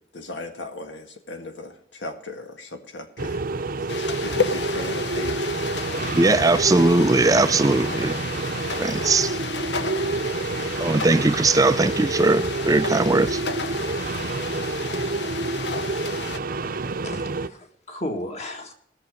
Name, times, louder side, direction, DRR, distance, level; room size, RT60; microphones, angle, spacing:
voice 1, 0.1-3.4 3.8-5.5, left 2 dB, 90° left, 1.8 m, -37 dB
sound 1, 3.2-17.5, right 3 dB, 50° right, 0.7 m, -28 dB
sound 2, 3.9-16.4, left 5 dB, 70° left, 1.0 m, -32 dB
voice 2, 6.1-8.2 8.8-9.4 10.8-13.4, right 2 dB, 20° right, 0.4 m, -19 dB
voice 3, 17.0-18.7, left 1 dB, 40° left, 1.9 m, -34 dB
19.0 x 6.8 x 5.2 m
head